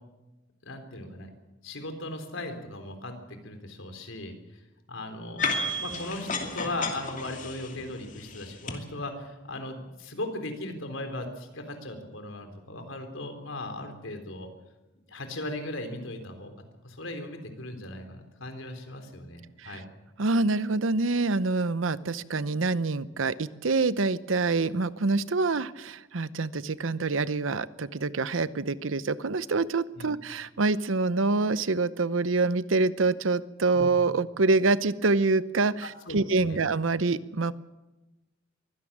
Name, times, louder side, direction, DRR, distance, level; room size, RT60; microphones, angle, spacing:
voice 1, 0.6-1.3 1.6-3.1 3.4-4.3 4.9-14.5 15.1-16.5 16.8-19.8 30.0-30.1 33.7-34.0 35.8-36.6, left 1 dB, 85° left, 6 dB, 3.8 m, -38 dB
sound 1, 5.4-8.8, left 2 dB, 40° left, 2.7 m, -32 dB
voice 2, 20.2-37.5, right 3 dB, 85° right, 16 dB, 0.8 m, -26 dB
23.0 x 16.5 x 7.4 m, 1.1 s
head